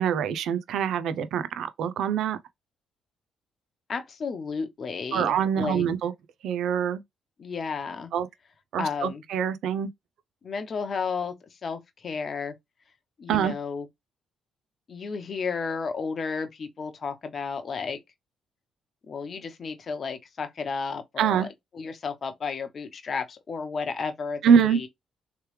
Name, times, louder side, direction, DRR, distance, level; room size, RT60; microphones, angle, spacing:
voice 1, 0.0-2.4 5.1-6.1 6.4-7.0 8.1-8.3 8.7-9.9 13.3-13.5 21.2-21.5 24.4-24.8, right 7 dB, 75° right, 0.5 m, -24 dB
voice 2, 3.9-5.8 7.4-8.1 8.8-9.2 10.4-12.5 13.2-13.9 14.9-18.0 19.1-21.5 21.7-24.9, left 5 dB, 45° left, 0.9 m, -32 dB
3.2 x 3.2 x 3.2 m
cardioid pair, 90°, 0 cm